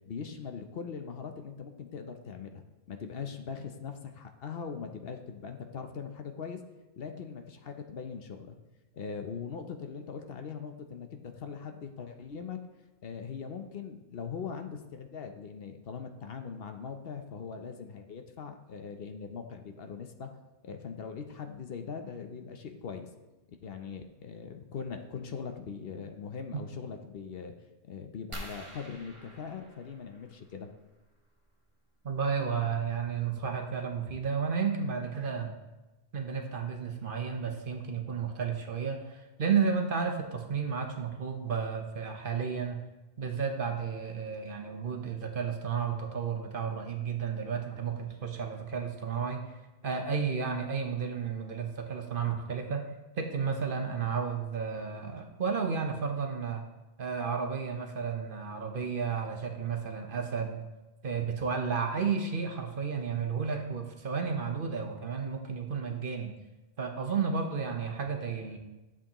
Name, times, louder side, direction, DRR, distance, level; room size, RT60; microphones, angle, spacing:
voice 1, 0.1-6.6 7.0-8.5 8.9-12.6 13.0-20.3 20.6-23.1 23.6-27.5 27.8-30.7, left 6 dB, 65° left, 6 dB, 0.9 m, -41 dB
sound 1, 28.3-30.7 32.3-32.5 33.1-33.2 33.4-33.7, right 1 dB, 30° right, 1.2 m, -46 dB
voice 2, 32.0-35.5 36.1-42.8 43.2-49.4 49.8-52.8 53.2-56.6 57.0-60.6 61.0-66.3 66.8-68.6, right 6 dB, 55° right, 4 dB, 1.0 m, -32 dB
11.0 x 7.3 x 2.9 m, 1.1 s
omnidirectional pair, 1.1 m